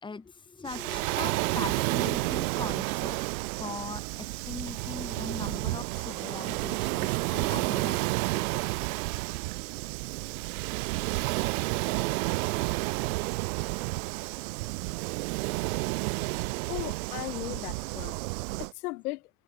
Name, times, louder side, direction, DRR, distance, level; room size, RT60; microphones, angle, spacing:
voice 1, 0.0-3.2 3.6-8.5 15.8-15.9, left 4 dB, 10° left, 3.1 m, -40 dB
Waves surf, 0.7-18.7, right 24 dB, 60° right, 1.5 m, -31 dB
voice 2, 16.7-18.2 18.6-19.2, left 20 dB, 70° left, 7.5 m, -36 dB
supercardioid pair, 145°, 47 cm